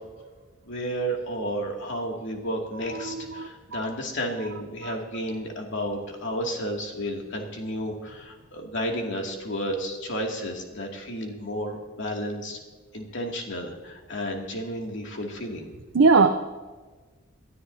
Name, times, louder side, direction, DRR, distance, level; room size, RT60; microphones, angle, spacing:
voice 1, 0.7-12.6 12.9-15.7, equal, 60° left, 0 dB, 2.5 m, -32 dB
voice 2, 3.0-3.9 4.8-4.9 15.9-16.3, right 4 dB, 60° right, 5 dB, 0.7 m, -21 dB
21.5 x 13.0 x 2.8 m, 1.3 s
head